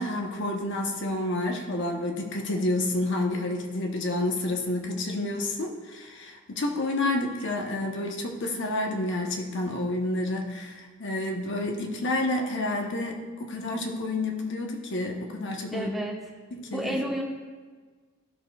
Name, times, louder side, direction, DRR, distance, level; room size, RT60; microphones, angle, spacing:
voice 1, 0.0-15.9 16.5-17.0, left 2 dB, 60° left, 2 dB, 1.0 m, -29 dB
voice 2, 15.7-16.1 16.7-17.2, equal, ahead, -3 dB, 1.1 m, -30 dB
15.0 x 6.5 x 2.3 m, 1.5 s
head